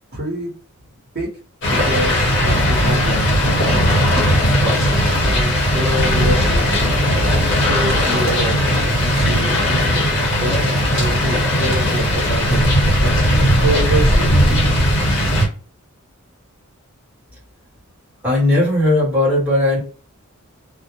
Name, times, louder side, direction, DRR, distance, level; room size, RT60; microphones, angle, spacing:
voice 1, 0.1-0.5 1.1-1.3 1.7-3.2 3.6-4.1 4.6-8.5 9.0-12.6 13.0-14.4, equal, 45° right, -3 dB, 0.9 m, -26 dB
sound 1, 1.6-15.5, equal, 50° left, 1.1 m, -17 dB
voice 2, 18.2-19.8, left 1 dB, 5° right, -7 dB, 1.0 m, -16 dB
2.3 x 2.0 x 2.8 m, 0.37 s
head